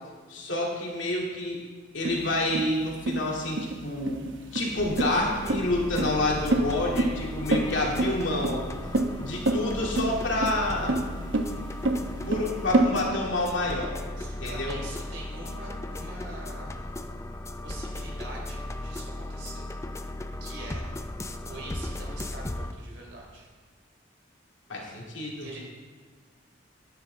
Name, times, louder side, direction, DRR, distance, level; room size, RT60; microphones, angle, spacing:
voice 1, 0.3-1.6 1.9-4.2 4.5-8.6 9.2-11.0 12.2-13.9 14.4-14.8 24.7-25.5, left 1 dB, 75° left, -2 dB, 2.4 m, -28 dB
sound 1, 2.0-12.9, right 2 dB, 85° right, 1.0 m, -27 dB
sound 2, 4.8-22.7, left 1 dB, 15° left, 0.5 m, -36 dB
voice 2, 14.2-16.8 17.6-19.7 20.4-20.8 21.4-23.5 25.4-25.6, right 2 dB, 70° right, -2 dB, 3.8 m, -43 dB
13.0 x 10.0 x 3.4 m, 1.5 s
head